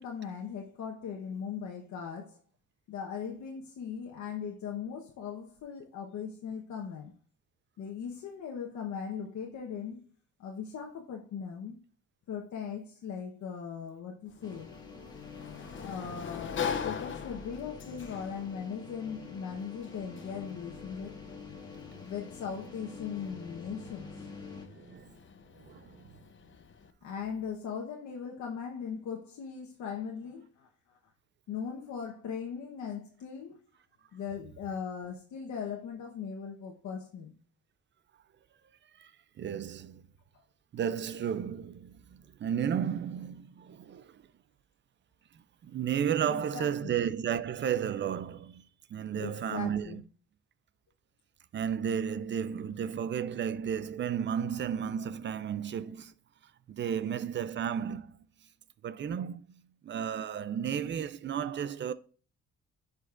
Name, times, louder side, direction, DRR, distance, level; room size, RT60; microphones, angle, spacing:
voice 1, 0.0-2.4 2.9-7.1 7.8-10.0 10.4-11.8 12.3-14.7 15.8-21.1 22.0-24.3 27.0-31.0 31.5-33.6 34.1-37.3 40.3-40.4 46.3-46.9 49.1-50.0, left 7 dB, 70° left, 1.1 m, -39 dB
Sliding door, 14.3-26.9, left 7 dB, 40° left, 0.8 m, -43 dB
sound 1, 14.4-24.7, left 4 dB, 15° left, 1.5 m, -47 dB
voice 2, 24.7-25.1 25.5-26.2 39.0-39.1 39.4-40.0 40.7-44.2 45.6-50.0 51.5-56.1 56.7-58.2 58.8-61.9, right 8 dB, 40° right, 0.4 m, -33 dB
10.5 x 5.0 x 2.5 m
cardioid pair, 115°, 30 cm